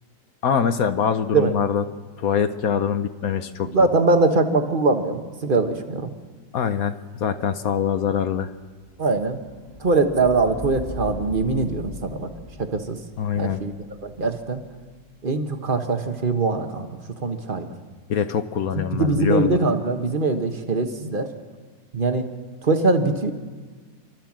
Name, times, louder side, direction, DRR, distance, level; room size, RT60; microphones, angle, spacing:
voice 1, 0.4-1.8 2.2-3.7 6.5-8.5 13.2-13.6 18.1-19.6, left 7 dB, 60° left, 10 dB, 1.1 m, -24 dB
voice 2, 3.6-6.1 9.0-9.4 9.8-12.3 12.6-13.0 13.4-13.7 14.0-14.6 15.2-16.9 17.2-17.7 18.9-21.3 21.9-22.3 22.6-23.3, right 3 dB, 30° right, 6 dB, 1.4 m, -22 dB
sound 1, 8.6-15.0, left 2 dB, 25° left, 1.7 m, -40 dB
28.5 x 12.5 x 7.5 m, 1.5 s
omnidirectional pair, 2.0 m